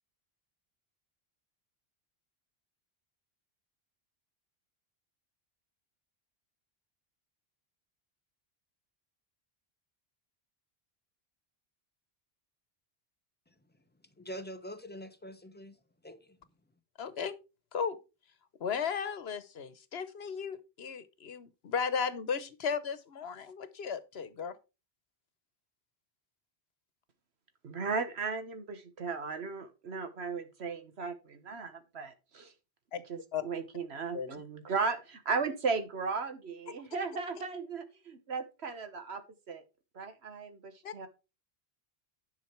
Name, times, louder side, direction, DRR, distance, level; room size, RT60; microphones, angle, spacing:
voice 1, 14.2-16.4, equal, 10° left, 0.8 m, -45 dB
voice 2, 17.0-17.3 17.7-18.0 18.6-24.5 32.9-33.0 33.3-33.4 34.1-34.3 40.8-40.9, left 6 dB, 80° left, 1.2 m, -35 dB
voice 3, 27.6-32.5 33.1-39.6 39.9-41.1, right 4 dB, 85° right, 1.5 m, -36 dB
10.5 x 5.7 x 4.4 m
omnidirectional pair, 1.1 m